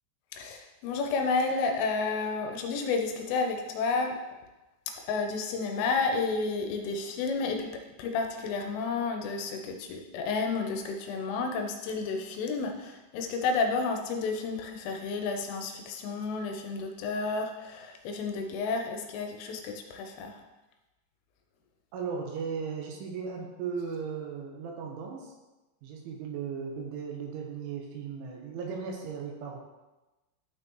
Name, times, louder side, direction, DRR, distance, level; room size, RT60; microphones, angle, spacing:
voice 1, 0.3-4.2 5.1-7.7 8.0-20.4, left 4 dB, 80° left, 3 dB, 3.2 m, -31 dB
voice 2, 21.9-25.3 25.8-29.6, right 6 dB, 80° right, 0 dB, 3.2 m, -36 dB
12.5 x 5.7 x 3.0 m, 1.1 s
omnidirectional pair, 5.9 m